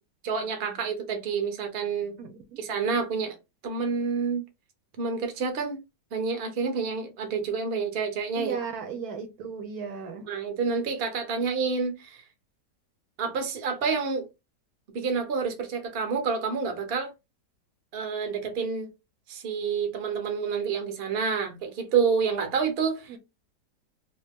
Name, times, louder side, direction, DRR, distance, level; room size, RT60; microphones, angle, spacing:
voice 1, 0.2-2.2 2.6-3.4 3.6-4.4 5.0-5.8 6.1-8.6 10.3-12.2 13.2-14.3 14.9-17.1 17.9-18.9 19.3-23.2, right 5 dB, 50° right, 0.8 m, -28 dB
voice 2, 2.2-2.6 8.3-10.3 23.1-23.2, right 6 dB, 65° right, 1.1 m, -36 dB
2.8 x 2.8 x 3.4 m
omnidirectional pair, 1.9 m